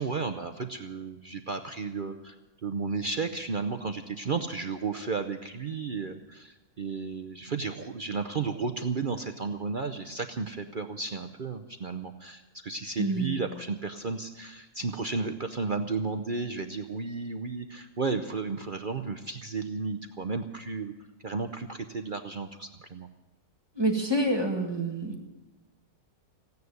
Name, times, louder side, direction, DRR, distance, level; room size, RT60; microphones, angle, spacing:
voice 1, 0.0-2.3 2.6-20.9 21.2-23.1, right 4 dB, 45° right, 7 dB, 0.7 m, -33 dB
voice 2, 13.0-13.4 23.8-25.2, right 1 dB, 15° right, 1 dB, 2.0 m, -27 dB
16.0 x 9.6 x 9.4 m, 1.1 s
omnidirectional pair, 1.7 m